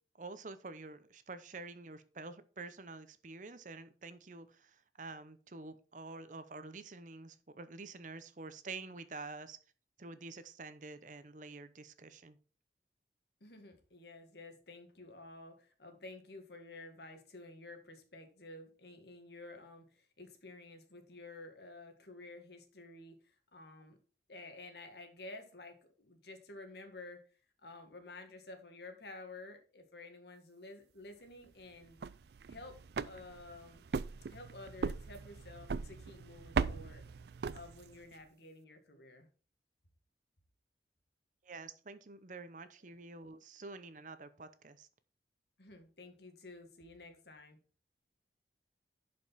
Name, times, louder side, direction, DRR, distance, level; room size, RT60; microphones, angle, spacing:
voice 1, 0.2-9.6 10.0-12.4 41.4-44.9, right 3 dB, 45° right, 12 dB, 0.8 m, -48 dB
voice 2, 13.4-24.0 24.3-27.2 27.6-32.0 32.5-32.8 33.0-33.8 34.3-37.0 37.5-39.3 42.8-42.9 45.6-47.6, left 2 dB, 70° left, 5 dB, 1.9 m, -52 dB
sound 1, 31.8-38.1, right 5 dB, 65° right, 0.4 m, -39 dB
11.0 x 5.3 x 4.2 m, 0.38 s
head